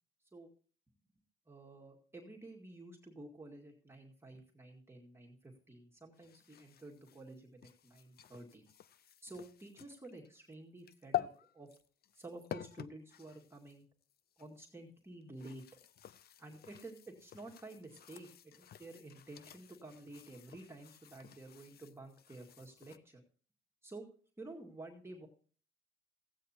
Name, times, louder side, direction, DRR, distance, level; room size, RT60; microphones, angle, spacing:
voice 1, 1.5-8.6 9.2-11.3 11.5-11.7 12.1-13.9 14.4-15.6 16.4-23.2 23.8-24.0 24.4-25.3, right 2 dB, 10° right, -1 dB, 2.0 m, -51 dB
sound 1, 6.1-14.6 15.2-23.0, left 11 dB, 50° left, 0.5 m, -47 dB
15.5 x 9.0 x 2.8 m, 0.41 s
cardioid pair, 90°, 20 cm